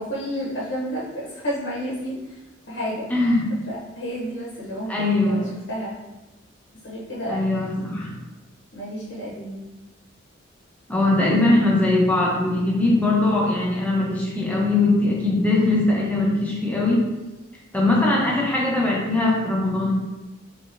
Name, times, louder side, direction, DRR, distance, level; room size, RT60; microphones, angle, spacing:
voice 1, 0.0-2.4 2.7-3.1 3.7-6.0 6.8-8.0 8.7-9.6, equal, 70° left, -6 dB, 0.8 m, -31 dB
voice 2, 3.1-3.4 4.9-5.4 7.3-8.1 10.9-17.0 17.7-19.9, left 2 dB, 10° left, -4 dB, 0.7 m, -21 dB
3.5 x 3.4 x 2.6 m, 1.1 s
head